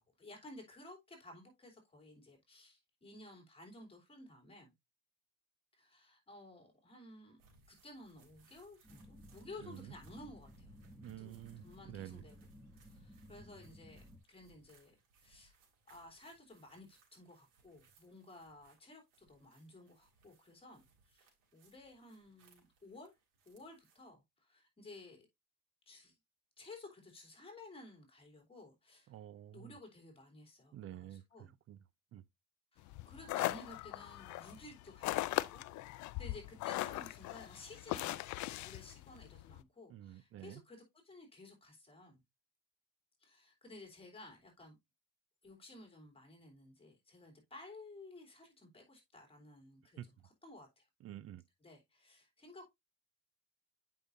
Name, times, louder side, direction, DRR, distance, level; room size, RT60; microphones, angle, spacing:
voice 1, 0.0-4.7 5.7-7.4 7.7-10.7 11.2-11.3 11.6-12.3 12.8-15.5 15.9-23.1 23.4-25.3 25.9-26.1 26.6-29.1 29.5-31.5 32.7-42.2 43.2-44.8 45.4-50.0 50.4-50.9 51.6-52.7, left 2 dB, 15° left, 3.2 m, -55 dB
sound 1, 7.4-24.1, right 3 dB, 85° right, 3.2 m, -69 dB
sound 2, 8.8-14.2, equal, 5° right, 1.7 m, -57 dB
voice 2, 9.6-9.9 11.0-12.2 29.1-29.8 30.7-31.8 32.1-32.2 39.9-40.6 50.0-50.1 51.0-51.4, right 12 dB, 45° right, 0.4 m, -49 dB
sound 3, 32.9-39.6, left 17 dB, 65° left, 0.5 m, -39 dB
8.2 x 5.5 x 2.6 m
cardioid pair, 110°, 32 cm